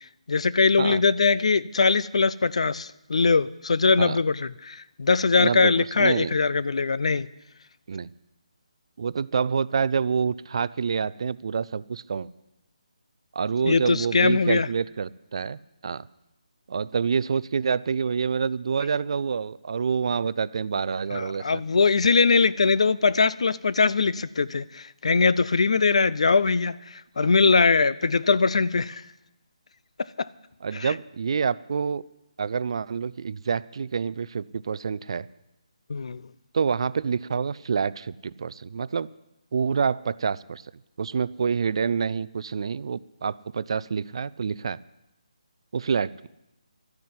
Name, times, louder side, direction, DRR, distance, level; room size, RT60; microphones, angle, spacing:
voice 1, 0.3-7.3 13.6-14.7 21.1-29.0 30.2-30.3 30.7-30.9 35.9-36.2, left 4 dB, 65° left, 0.6 m, -21 dB
voice 2, 5.4-6.3 7.9-8.1 9.0-12.3 13.4-16.1 16.7-21.6 27.2-27.3 30.6-32.0 32.4-35.3 36.5-39.1 39.5-40.6 41.0-44.8 45.7-46.3, right 6 dB, 50° right, 0.4 m, -27 dB
12.0 x 9.5 x 9.5 m
figure-of-eight pair, 160°, 4 cm